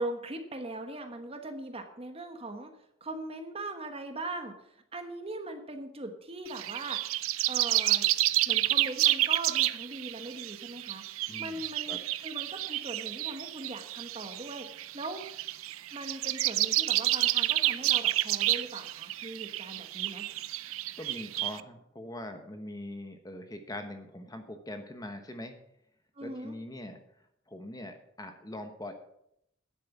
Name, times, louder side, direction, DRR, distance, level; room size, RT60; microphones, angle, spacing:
voice 1, 0.0-2.7 3.0-7.0 7.5-8.1 8.5-11.0 11.4-15.3 15.9-20.3 26.2-26.6, right 2 dB, 30° right, 6 dB, 1.2 m, -40 dB
sound 1, 6.5-21.6, right 15 dB, 80° right, 0.5 m, -30 dB
voice 2, 11.3-11.6 11.9-12.0 21.0-25.5 26.2-27.0 27.5-28.9, left 1 dB, 20° left, 6 dB, 1.1 m, -42 dB
10.0 x 7.9 x 7.1 m, 0.75 s
head